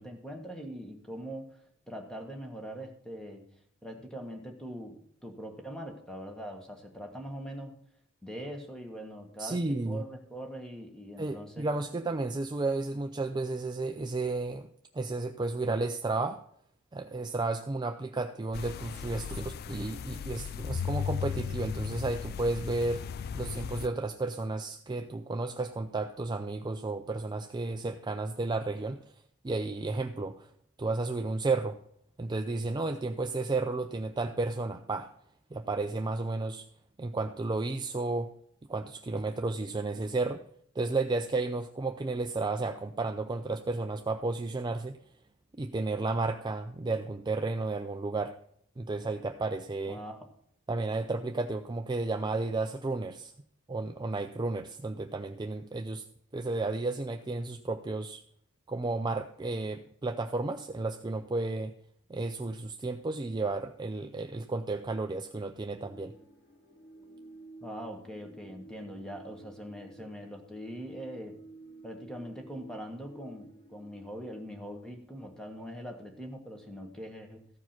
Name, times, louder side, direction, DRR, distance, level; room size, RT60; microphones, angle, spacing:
voice 1, 0.0-1.6 1.9-3.4 3.8-7.8 8.2-11.7 49.9-50.3 67.6-71.4 71.8-77.5, equal, 5° left, 3 dB, 1.4 m, -42 dB
voice 2, 9.4-10.0 11.2-14.7 14.9-16.4 16.9-23.0 23.3-29.0 29.4-30.5 30.8-31.8 32.2-35.1 35.5-36.6 37.0-38.3 38.7-40.4 40.8-44.9 45.6-48.4 48.8-50.0 50.7-53.3 53.7-56.0 56.3-58.2 58.7-61.7 62.1-66.1, right 3 dB, 20° right, 6 dB, 0.4 m, -32 dB
sound 1, 18.5-23.9, left 7 dB, 45° left, 0.3 m, -36 dB
sound 2, 65.8-74.3, right 2 dB, 65° left, 3.2 m, -52 dB
14.0 x 4.8 x 5.8 m, 0.68 s
head